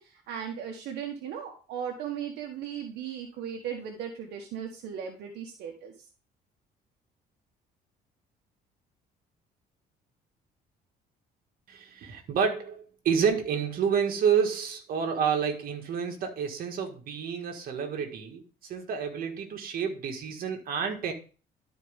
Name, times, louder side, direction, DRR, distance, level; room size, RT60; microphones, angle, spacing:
voice 1, 0.0-5.9, right 8 dB, 80° right, 2 dB, 1.3 m, -37 dB
voice 2, 11.7-21.1, right 7 dB, 60° right, 4 dB, 1.9 m, -29 dB
12.0 x 4.6 x 3.6 m, 0.37 s
cardioid pair, 110°, 17 cm